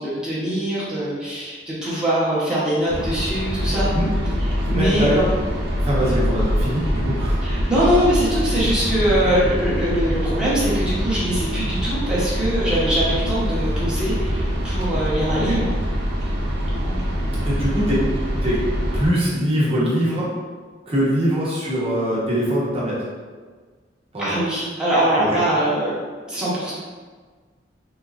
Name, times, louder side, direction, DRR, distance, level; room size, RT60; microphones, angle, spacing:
voice 1, 0.0-3.9 4.7-5.1 7.4-15.7 16.7-17.0 24.2-25.9 26.3-26.7, right 1 dB, 5° right, -10 dB, 0.9 m, -22 dB
sound 1, 2.9-19.1, equal, 65° right, 0.6 m, -24 dB
voice 2, 4.6-5.3 5.8-7.4 15.3-15.5 17.4-18.0 18.4-18.6 18.9-20.3 20.9-23.0 24.1-24.4 25.2-25.4, equal, 35° right, -7 dB, 1.0 m, -22 dB
3.5 x 3.0 x 2.4 m, 1.5 s
head